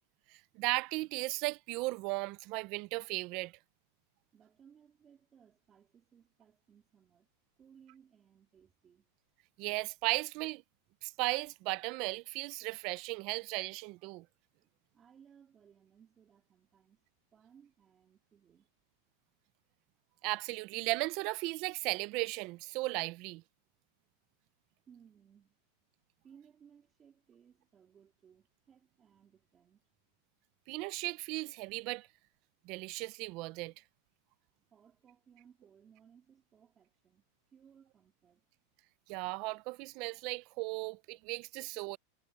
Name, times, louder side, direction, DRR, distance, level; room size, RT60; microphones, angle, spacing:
voice 1, 0.3-3.5 9.6-10.6 11.0-14.3 20.2-23.4 30.7-32.1 32.6-33.7 39.1-42.0, right 24 dB, 35° right, 0.4 m, -36 dB
voice 2, 4.3-7.3 7.6-9.1 14.6-18.7 24.9-25.6 26.2-29.8 34.7-38.4, right 8 dB, 15° right, 3.5 m, -63 dB
supercardioid pair, 175°, 0 cm